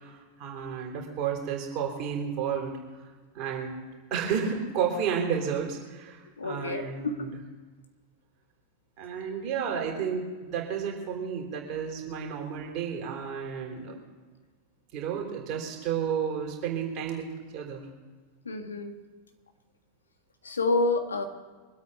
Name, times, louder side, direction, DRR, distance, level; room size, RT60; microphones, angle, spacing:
voice 1, 0.0-2.7 3.3-7.3 9.0-13.9 14.9-17.9, right 7 dB, 40° right, 0 dB, 3.6 m, -32 dB
voice 2, 6.4-7.3 18.4-18.9 20.4-21.2, left 2 dB, 75° left, 6 dB, 1.6 m, -28 dB
23.5 x 8.4 x 5.6 m, 1.4 s
figure-of-eight pair, 90°, 0 cm